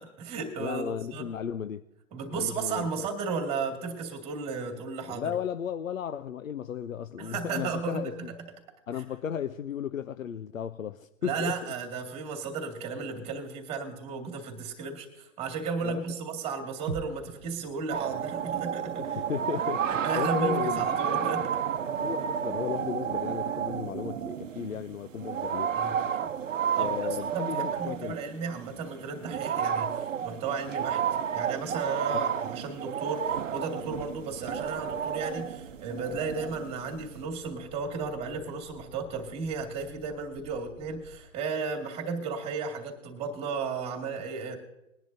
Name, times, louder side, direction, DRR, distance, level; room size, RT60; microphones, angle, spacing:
voice 1, 0.0-1.3 2.1-5.3 7.2-8.2 11.2-19.2 19.9-21.6 21.8-21.9 25.8-26.3 26.7-26.9 27.3-31.0 31.3-44.6, right 4 dB, 15° right, 3 dB, 2.1 m, -34 dB
voice 2, 0.6-1.8 2.3-3.1 5.1-8.3 8.9-11.7 15.8-16.0 19.0-19.8 20.1-20.9 22.0-25.7 26.8-28.2 32.1-32.2, left 8 dB, 85° left, 12 dB, 0.7 m, -35 dB
sound 1, 16.9-20.8 21.1-21.2, right 7 dB, 45° right, 0.8 m, -45 dB
sound 2, 17.9-37.2, right 8 dB, 75° right, 0.9 m, -31 dB
sound 3, 33.8-41.2, equal, 35° left, 2.5 m, -53 dB
21.0 x 10.5 x 2.7 m, 0.89 s
hypercardioid pair, 145°, 39 cm